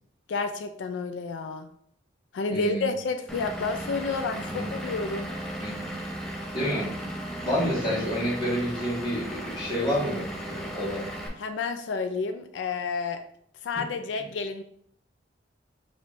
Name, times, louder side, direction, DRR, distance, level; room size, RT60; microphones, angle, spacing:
voice 1, 0.3-1.7 2.3-5.3 11.3-13.2 13.6-14.6, left 4 dB, 80° left, 8 dB, 0.4 m, -30 dB
voice 2, 2.5-2.9 4.4-4.7 5.6-5.9 6.5-6.9 7.4-11.1, equal, 25° left, -7 dB, 1.7 m, -29 dB
Vehicle / Engine, 3.3-11.3, equal, 5° left, 0.6 m, -36 dB
5.4 x 3.1 x 2.6 m, 0.66 s
head